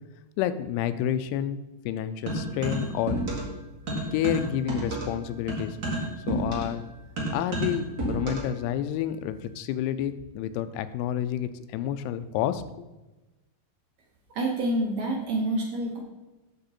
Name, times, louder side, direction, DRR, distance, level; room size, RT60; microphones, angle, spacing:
voice 1, 0.4-3.2 4.1-5.8 6.3-6.8 7.3-12.9, left 10 dB, 90° left, 11 dB, 2.6 m, -29 dB
sound 1, 2.3-3.6 3.9-8.6, right 1 dB, 45° right, 1.2 m, -30 dB
voice 2, 14.3-16.0, right 1 dB, 75° right, -1 dB, 1.6 m, -27 dB
7.9 x 6.9 x 4.3 m, 1.1 s
omnidirectional pair, 4.6 m